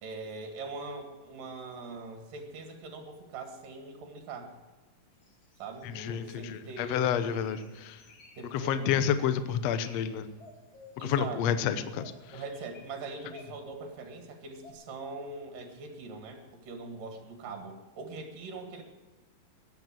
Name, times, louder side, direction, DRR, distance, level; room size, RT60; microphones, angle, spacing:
voice 1, 0.0-4.5 5.6-7.0 8.4-9.0 11.0-11.5 12.3-18.8, right 3 dB, 65° right, 5 dB, 3.6 m, -42 dB
sound 1, 5.2-6.4 6.8-8.4 8.8-9.2 9.6-10.0 10.3-11.6 12.0-14.0 14.6-14.7, equal, 40° left, 2.5 m, -52 dB
voice 2, 5.9-8.0 8.5-10.3 11.0-12.0, left 8 dB, 70° left, 11 dB, 1.6 m, -29 dB
15.5 x 11.0 x 7.6 m, 1.2 s
omnidirectional pair, 4.2 m